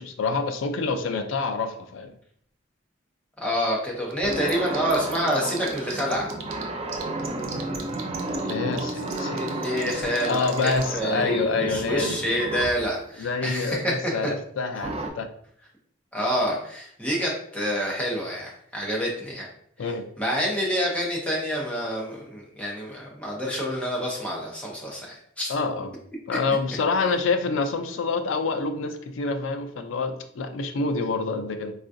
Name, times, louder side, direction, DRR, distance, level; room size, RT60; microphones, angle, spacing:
voice 1, 0.0-2.1 8.3-9.4 9.8-9.9 10.2-12.2 13.2-15.3 19.8-20.0 25.5-25.9 26.3-31.7, left 4 dB, 75° left, 7 dB, 0.4 m, -27 dB
voice 2, 3.4-6.3 9.2-13.9 16.1-19.5 19.8-19.9 20.2-25.5, equal, 5° left, -3 dB, 0.7 m, -27 dB
sound 1, 4.1-6.6 6.9-10.8, right 9 dB, 85° right, 0.5 m, -37 dB
sound 2, 4.2-12.9 14.8-15.1, right 2 dB, 30° right, 0.3 m, -32 dB
3.7 x 2.3 x 2.6 m, 0.65 s
head